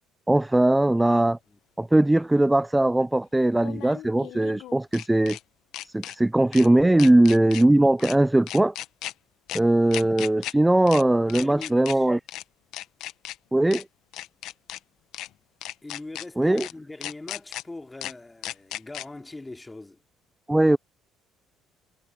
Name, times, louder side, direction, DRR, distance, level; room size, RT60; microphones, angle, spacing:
voice 1, 0.3-1.4 1.8-5.4 5.8-8.7 9.5-12.2 13.5-13.8 16.4-16.7 20.5-20.8, right 1 dB, 10° right, 0.4 m, -20 dB
sound 1, 1.1-1.2 3.6-5.4 5.7-6.2 6.5-6.7 7.0-7.6 8.0-8.2 8.5-9.1 9.5-9.6 9.9-10.5 10.9-11.0 11.3-12.0 12.3-12.4 12.7-13.4 13.7-13.8 14.1-14.8 15.1-15.3 15.6-16.3 16.6-16.7 17.0-17.6 18.0-18.1 18.4-19.1, left 14 dB, 70° left, 1.1 m, -36 dB
voice 2, 11.2-12.1 15.8-20.0, left 2 dB, 15° left, 2.7 m, -41 dB
supercardioid pair, 70°, 0 cm